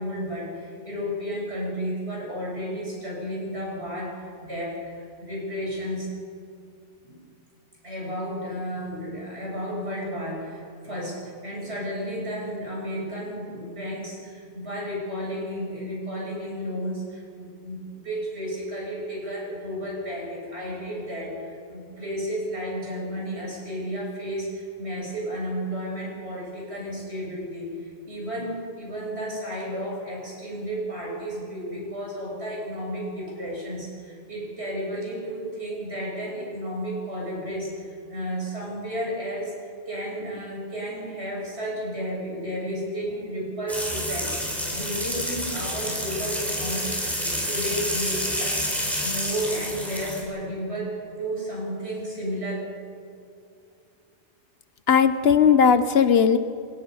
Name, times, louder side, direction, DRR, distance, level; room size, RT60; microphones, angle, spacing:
voice 1, 0.0-6.1 7.0-7.2 7.8-52.7, equal, 60° right, -3 dB, 7.4 m, -32 dB
sound 1, 43.7-50.2, equal, ahead, 5.0 m, -29 dB
voice 2, 54.9-56.4, left 7 dB, 55° left, 12 dB, 1.1 m, -17 dB
29.5 x 16.5 x 5.6 m, 2.5 s
omnidirectional pair, 1.2 m